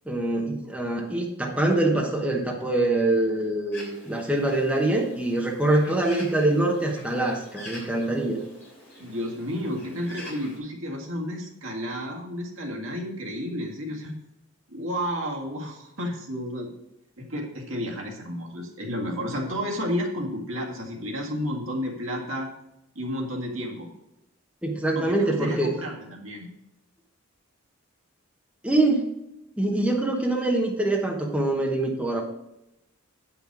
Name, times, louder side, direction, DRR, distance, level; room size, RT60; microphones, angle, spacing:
voice 1, 0.1-8.4 24.6-25.7 28.6-29.1 29.6-32.2, right 2 dB, 5° right, -1 dB, 1.0 m, -24 dB
Bird, 3.7-10.6, left 1 dB, 10° left, 3.3 m, -45 dB
voice 2, 9.0-14.1 14.7-16.7 17.2-22.5 23.0-23.9 25.0-26.5, equal, 70° right, 0 dB, 2.0 m, -31 dB
8.6 x 5.8 x 4.7 m, 0.86 s
head